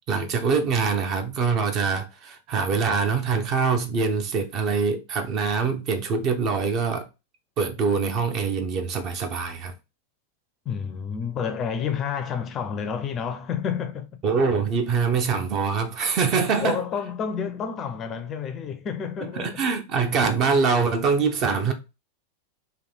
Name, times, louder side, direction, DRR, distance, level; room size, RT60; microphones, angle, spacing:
voice 1, 0.0-7.1 7.6-9.7 14.2-16.8 19.4-21.7, right 5 dB, 35° right, 0.8 m, -24 dB
voice 2, 10.7-14.2 16.1-16.2 16.6-19.6, left 7 dB, 30° left, 0.5 m, -30 dB
3.3 x 2.8 x 4.0 m
figure-of-eight pair, 90°, 0 cm